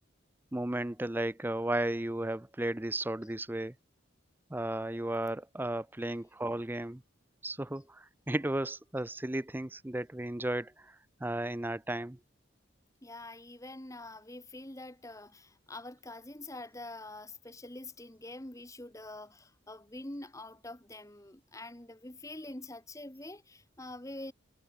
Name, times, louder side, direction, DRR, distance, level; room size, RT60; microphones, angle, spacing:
voice 1, 0.5-3.7 4.5-7.0 7.4-11.0 11.2-12.2, right 1 dB, 10° right, 0.5 m, -34 dB
voice 2, 13.0-24.3, left 2 dB, 15° left, 1.5 m, -45 dB
head